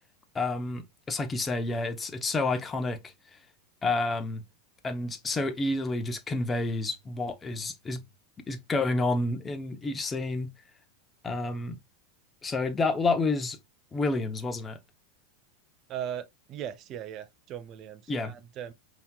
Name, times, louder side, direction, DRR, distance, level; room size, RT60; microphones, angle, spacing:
voice 1, 0.3-3.1 3.8-4.4 4.8-8.0 8.5-10.5 11.2-11.8 12.4-13.6 13.9-14.8 18.1-18.3, left 3 dB, 20° left, 0.8 m, -29 dB
voice 2, 15.9-18.7, right 10 dB, 40° right, 0.5 m, -38 dB
5.4 x 2.9 x 2.3 m
supercardioid pair, 120°, 0 cm